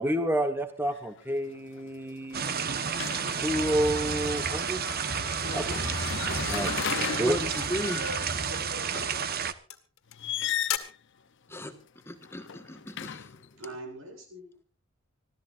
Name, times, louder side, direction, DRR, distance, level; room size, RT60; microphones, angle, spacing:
voice 1, 0.0-3.0 3.3-4.8 5.5-5.8 6.5-6.7 7.1-7.4, right 1 dB, 10° right, 7 dB, 1.3 m, -29 dB
sound 1, 0.9-1.2 1.6-3.7 5.5-8.6 10.1-11.0 12.2-13.5, left 8 dB, 60° left, 0.7 m, -36 dB
sound 2, 2.3-9.5, right 6 dB, 45° right, 1.1 m, -31 dB
sound 3, 3.2-7.7 8.7-9.0 9.7-10.2 10.7-10.8, left 9 dB, 80° left, 2.1 m, -40 dB
voice 2, 5.4-5.8 6.2-7.0 7.9-9.2 13.6-14.5, right 1 dB, 65° right, 5 dB, 7.2 m, -42 dB
voice 3, 7.2-8.0 8.9-9.1 11.5-13.4, left 1 dB, 10° left, 6 dB, 1.4 m, -36 dB
26.0 x 15.5 x 2.5 m, 0.36 s
head